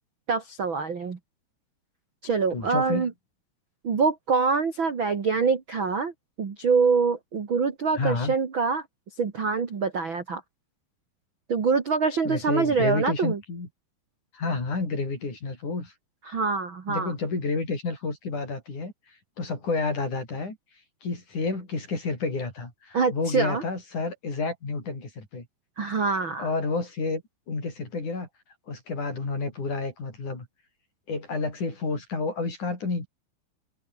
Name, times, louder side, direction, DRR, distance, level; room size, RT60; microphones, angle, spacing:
voice 1, 0.3-1.2 2.2-3.1 3.8-6.1 6.4-8.8 9.2-10.4 11.5-13.4 16.3-17.1 22.9-23.6 25.8-26.5, right 5 dB, 40° right, 1.8 m, -25 dB
voice 2, 2.5-3.1 8.0-8.3 12.2-13.7 14.3-15.9 16.9-18.9 19.4-20.6 21.0-25.5 26.4-27.2 27.5-28.3 28.7-30.5 31.1-33.1, left 3 dB, 40° left, 8.2 m, -30 dB
open air
omnidirectional pair, 5.4 m